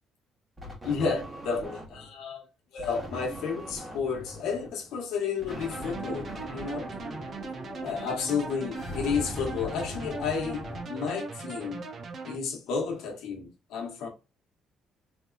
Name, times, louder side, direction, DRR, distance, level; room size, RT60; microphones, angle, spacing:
sound 1, 0.6-2.2 2.8-7.9, right 1 dB, 15° right, 1.2 m, -43 dB
voice 1, 0.8-2.5 2.7-6.9 7.8-11.8 12.2-14.1, left 5 dB, 80° left, 1.1 m, -32 dB
sound 2, 5.5-10.8, left 2 dB, 45° left, 1.0 m, -40 dB
sound 3, 5.5-12.4, right 4 dB, 40° right, 0.5 m, -39 dB
3.5 x 3.0 x 2.4 m
cardioid pair, 140°, 0 cm